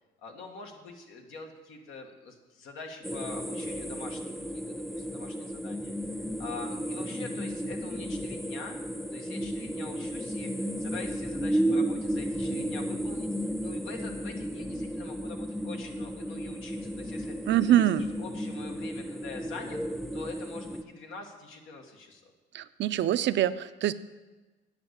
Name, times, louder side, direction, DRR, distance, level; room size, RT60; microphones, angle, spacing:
voice 1, 0.2-8.8 9.1-19.8 20.1-22.3, left 4 dB, 85° left, 3 dB, 1.4 m, -45 dB
sound 1, 3.0-20.8, equal, ahead, 0.5 m, -33 dB
voice 2, 17.5-18.1 22.5-23.9, right 11 dB, 65° right, 14 dB, 0.5 m, -24 dB
8.9 x 5.3 x 8.0 m, 1.2 s
cardioid pair, 90°, 20 cm